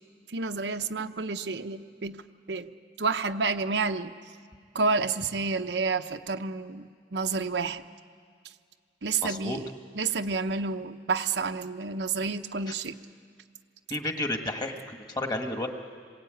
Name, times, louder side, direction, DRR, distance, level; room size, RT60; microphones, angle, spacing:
voice 1, 0.3-2.2 2.5-2.7 3.0-4.1 4.7-7.8 9.0-9.7 9.9-13.0, right 4 dB, 80° right, 8 dB, 0.9 m, -29 dB
voice 2, 9.2-9.6 13.9-15.7, left 1 dB, 25° left, 4 dB, 1.8 m, -31 dB
27.0 x 22.0 x 9.2 m, 2.1 s
head